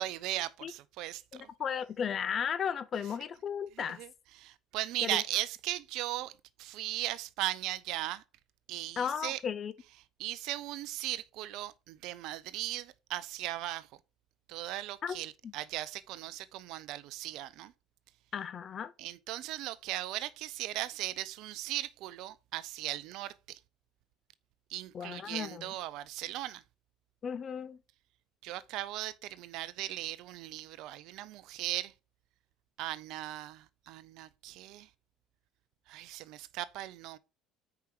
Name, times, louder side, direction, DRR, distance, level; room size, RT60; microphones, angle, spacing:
voice 1, 0.0-1.5 3.8-4.1 4.4-6.3 6.6-8.2 8.7-9.4 10.2-13.9 14.5-17.7 19.0-23.6 24.7-26.6 28.4-31.9 32.8-34.9 35.9-37.2, right 15 dB, 65° right, 0.5 m, -38 dB
voice 2, 1.3-4.0 5.0-5.2 9.0-9.7 15.0-15.2 18.3-18.9 24.9-25.6 27.2-27.8, left 7 dB, 45° left, 0.5 m, -35 dB
4.9 x 4.5 x 5.8 m
hypercardioid pair, 70°, 0 cm